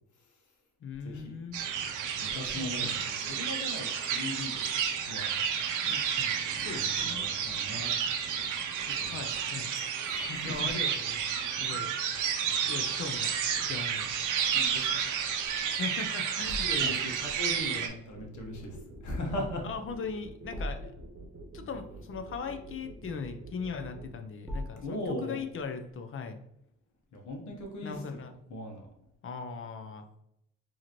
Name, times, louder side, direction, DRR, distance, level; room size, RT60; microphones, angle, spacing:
voice 1, 0.8-1.6 2.5-3.0 5.8-7.3 9.1-9.7 10.4-11.3 11.6-12.0 12.7-13.3 13.6-14.1 15.8-17.0 19.6-20.9 21.5-26.4 27.8-28.3 29.2-30.0, left 5 dB, 45° left, 7 dB, 0.6 m, -39 dB
sound 1, 1.5-17.9, right 7 dB, 85° right, 0.7 m, -31 dB
voice 2, 2.2-4.6 5.1-5.4 6.6-7.9 8.8-9.2 10.0-10.7 14.5-15.1 16.6-19.6 24.8-25.4 27.1-27.9 28.5-28.9, left 1 dB, 70° left, 2 dB, 1.3 m, -39 dB
sound 2, 14.3-25.9, equal, ahead, 1.1 m, -46 dB
sound 3, 18.1-24.1, right 2 dB, 45° right, 0.9 m, -47 dB
4.7 x 2.9 x 3.0 m, 0.77 s
cardioid pair, 90°, 30 cm